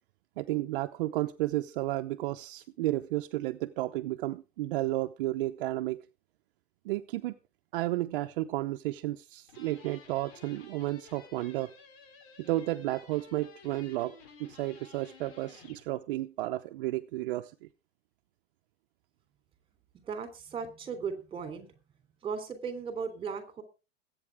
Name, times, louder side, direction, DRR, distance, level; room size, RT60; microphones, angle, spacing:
voice 1, 0.4-6.0 6.8-7.3 7.7-11.7 12.4-14.1 14.4-17.7, right 16 dB, 55° right, 7 dB, 0.9 m, -32 dB
sound 1, 9.5-15.9, left 5 dB, 55° left, 5.5 m, -54 dB
voice 2, 20.0-21.8 22.2-23.6, right 6 dB, 15° right, 9 dB, 3.3 m, -37 dB
21.0 x 8.9 x 3.5 m, 0.31 s
supercardioid pair, 155°, 32 cm